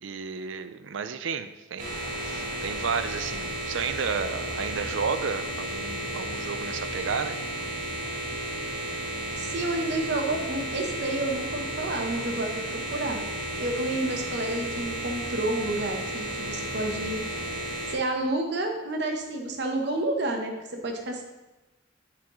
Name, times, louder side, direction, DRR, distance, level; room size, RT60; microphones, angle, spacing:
voice 1, 0.0-7.4, right 6 dB, 80° right, 11 dB, 0.5 m, -32 dB
sound 1, 1.8-17.9, right 1 dB, 45° right, 1.6 m, -33 dB
voice 2, 9.4-13.2 13.6-17.2 17.9-21.2, right 2 dB, 60° right, 3 dB, 1.0 m, -30 dB
7.3 x 7.3 x 3.1 m, 1.1 s
head